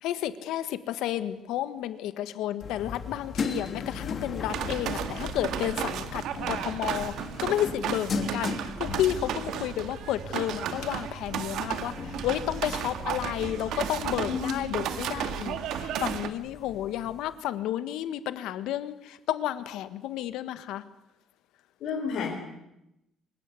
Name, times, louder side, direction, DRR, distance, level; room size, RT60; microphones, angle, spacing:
voice 1, 0.0-7.1 7.4-20.8, left 12 dB, 80° left, 12 dB, 1.6 m, -31 dB
sound 1, 2.6-17.4, left 4 dB, 35° left, 2.9 m, -38 dB
sound 2, 4.5-16.3, right 9 dB, 65° right, 1.9 m, -34 dB
voice 2, 14.3-14.6 21.8-22.4, left 6 dB, 60° left, 0 dB, 4.0 m, -31 dB
25.5 x 17.0 x 9.6 m, 0.87 s
cardioid pair, 175°, 0 cm